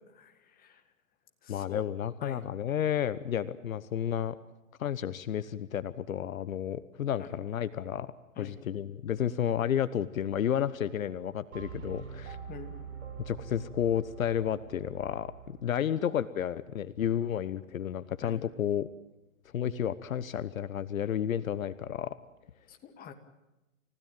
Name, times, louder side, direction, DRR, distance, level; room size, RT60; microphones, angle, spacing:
voice 1, 0.1-0.8 1.4-1.8 2.2-2.4 7.2-7.3 8.4-8.6 12.5-12.7 18.2-18.5 22.7-23.1, left 7 dB, 20° left, 6 dB, 2.5 m, -47 dB
voice 2, 1.5-4.3 4.8-8.1 8.4-12.4 13.3-18.9 19.5-22.1, left 9 dB, 70° left, 15 dB, 1.2 m, -31 dB
sound 1, 11.5-15.7, right 6 dB, 70° right, 5.0 m, -44 dB
30.0 x 16.5 x 9.1 m, 1.0 s
hypercardioid pair, 130°, 42 cm